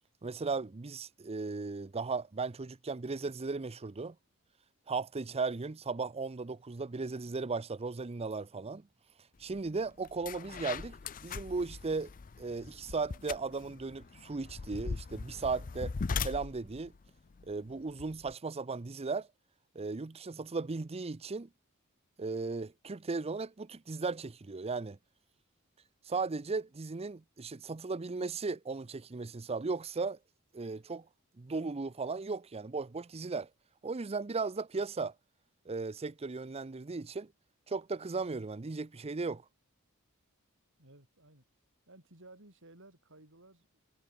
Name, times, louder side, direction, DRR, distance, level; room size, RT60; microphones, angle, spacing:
voice 1, 0.2-4.2 4.9-8.8 9.4-12.1 12.4-16.9 17.5-19.3 19.7-21.5 22.2-25.0 26.1-30.2 30.5-31.1 31.4-33.5 33.8-35.1 35.7-37.3 37.7-39.4, right 4 dB, 30° right, 0.6 m, -36 dB
sound 1, 9.5-9.7 10.0-18.3, left 5 dB, 40° left, 0.5 m, -40 dB
voice 2, 40.8-41.4 41.9-43.8, right 2 dB, 60° right, 8.0 m, -57 dB
head